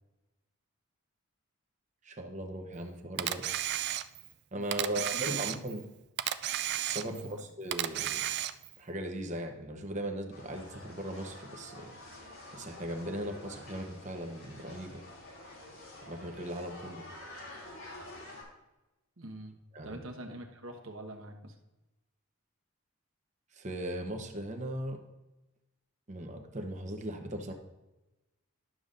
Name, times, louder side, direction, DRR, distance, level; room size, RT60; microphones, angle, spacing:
voice 1, 2.0-3.6 4.5-5.9 6.8-8.2 8.8-11.9 12.5-15.0 16.1-17.0 19.7-20.0 23.5-25.0 26.1-27.5, right 1 dB, 35° right, 4 dB, 0.9 m, -38 dB
Camera, 3.2-4.3 4.7-5.8 6.2-7.3 7.7-8.8, right 12 dB, 50° right, 0.3 m, -33 dB
voice 2, 4.6-5.7 7.0-7.4 19.2-19.6 19.8-21.6, right 1 dB, 65° right, 3 dB, 1.1 m, -45 dB
sound 1, 10.3-18.4, left 1 dB, 80° left, 2.8 m, -48 dB
11.0 x 6.9 x 2.5 m, 1.0 s
head